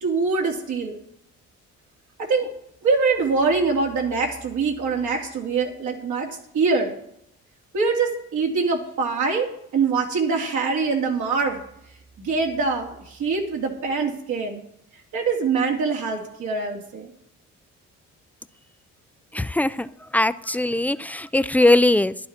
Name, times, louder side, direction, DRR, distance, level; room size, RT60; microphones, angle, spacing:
voice 1, 0.0-1.0 2.2-2.5 2.8-7.0 7.7-11.6 12.2-14.6 15.1-17.1, right 4 dB, 75° right, 0 dB, 2.6 m, -24 dB
voice 2, 19.3-22.2, left 2 dB, 5° left, 14 dB, 0.3 m, -20 dB
12.5 x 11.0 x 4.3 m, 0.75 s
cardioid pair, 90°, 30 cm